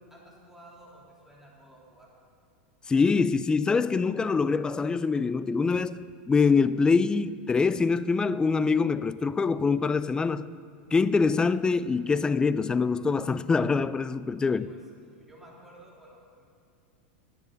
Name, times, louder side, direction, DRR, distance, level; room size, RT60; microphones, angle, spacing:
voice 1, 0.1-2.1 14.5-16.4, right 1 dB, 5° right, 3.0 m, -53 dB
voice 2, 2.9-10.5 10.9-14.7, left 4 dB, 15° left, 0.4 m, -24 dB
19.5 x 9.8 x 4.0 m
hypercardioid pair, 120°, 6 cm